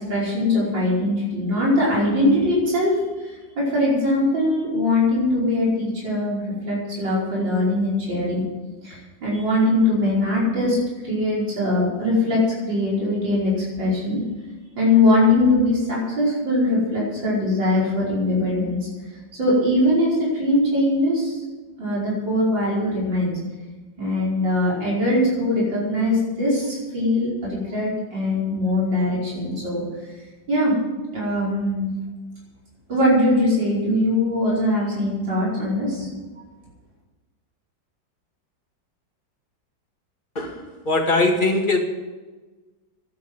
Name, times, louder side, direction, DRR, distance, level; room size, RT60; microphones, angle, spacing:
voice 1, 0.1-8.4 8.8-10.8 11.0-14.2 14.8-18.9 19.4-21.4 21.8-23.4 24.0-29.8 30.5-30.8 31.1-31.9 32.9-36.1, left 1 dB, 75° right, -6 dB, 5.8 m, -21 dB
voice 2, 40.9-41.8, left 2 dB, 25° left, 2 dB, 2.1 m, -20 dB
11.5 x 9.7 x 9.7 m, 1.2 s
omnidirectional pair, 2.0 m